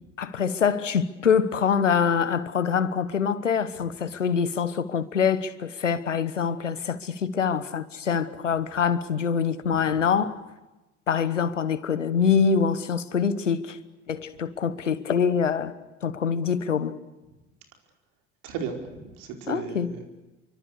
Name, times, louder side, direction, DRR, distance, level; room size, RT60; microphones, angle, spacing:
voice 1, 0.2-10.4 11.1-13.8 14.1-15.7 16.0-17.0 19.5-19.9, left 6 dB, 90° left, 1.2 m, -25 dB
voice 2, 9.7-10.0 18.4-20.1, right 6 dB, 60° right, 5.1 m, -36 dB
28.5 x 24.5 x 6.6 m
hypercardioid pair, 65°, 36 cm